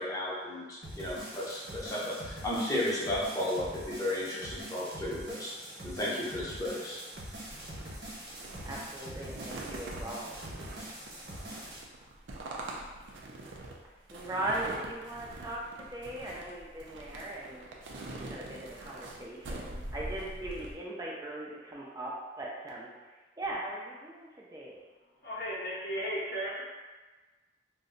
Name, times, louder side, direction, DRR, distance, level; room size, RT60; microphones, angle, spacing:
voice 1, 0.0-5.5 5.8-7.0, left 1 dB, 20° left, -7 dB, 0.7 m, -34 dB
sound 1, 0.8-11.8, right 1 dB, 60° right, 1.0 m, -44 dB
sound 2, 7.1-20.7, right 2 dB, 85° right, 0.5 m, -44 dB
voice 2, 8.6-10.3 14.1-17.7 17.9-24.8, right 1 dB, 20° right, -4 dB, 0.4 m, -39 dB
voice 3, 25.2-26.6, equal, 55° left, -6 dB, 0.6 m, -35 dB
2.6 x 2.1 x 3.8 m, 1.3 s
head